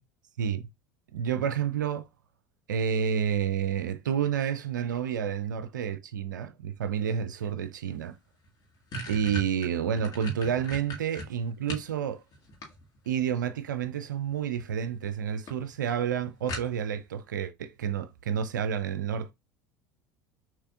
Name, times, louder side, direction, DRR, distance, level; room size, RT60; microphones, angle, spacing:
voice 1, 0.4-0.7 1.1-2.1 2.7-8.2 9.1-12.2 13.1-19.3, right 8 dB, 70° right, 0.4 m, -30 dB
sound 1, 8.0-8.1 8.4-11.9 12.3-13.2 14.3-14.7 15.0-15.1 15.5-15.6 15.9-16.0 16.5-17.0, equal, 40° left, 1.9 m, -38 dB
6.6 x 3.2 x 2.3 m
figure-of-eight pair, 70°, 10 cm